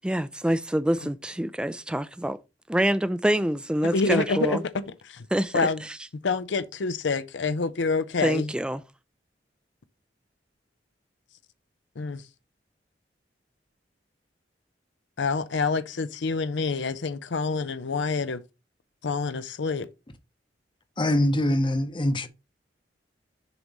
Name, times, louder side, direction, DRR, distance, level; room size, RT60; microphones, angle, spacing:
voice 1, 0.0-2.4 2.7-4.6 5.3-6.0 8.2-8.8, right 1 dB, 5° right, 0.3 m, -26 dB
voice 2, 3.9-4.6 5.1-5.2 5.5-5.8 6.2-8.5 12.0-12.2 15.2-18.4 19.0-19.9, left 4 dB, 90° left, 0.6 m, -27 dB
voice 3, 21.0-22.3, left 1 dB, 25° left, 0.8 m, -23 dB
6.9 x 3.1 x 5.2 m
head